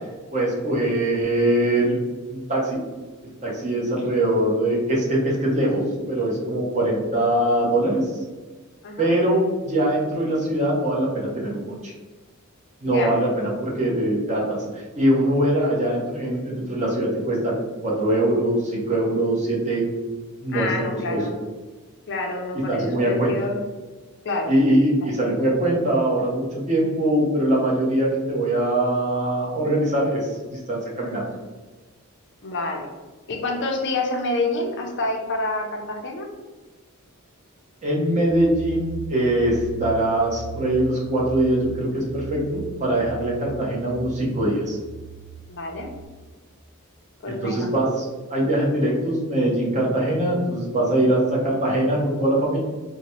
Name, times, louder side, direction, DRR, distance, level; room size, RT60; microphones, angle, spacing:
voice 1, 0.3-2.0 2.3-2.8 3.4-5.8 6.1-8.1 9.0-11.9 12.8-17.5 17.8-19.9 20.4-20.7 21.1-21.2 22.7-23.3 24.5-31.3 37.8-44.8 47.2-52.6, right 1 dB, 30° right, -4 dB, 0.8 m, -22 dB
voice 2, 12.8-13.2 20.5-21.3 22.1-23.6 24.2-24.5 25.0-25.1 32.4-32.9 33.3-36.3 45.5-45.9 47.2-47.7, left 2 dB, 55° left, 2 dB, 0.5 m, -28 dB
sound 1, 38.3-46.0, right 5 dB, 10° left, 0.6 m, -38 dB
4.0 x 2.1 x 2.9 m, 1.3 s
head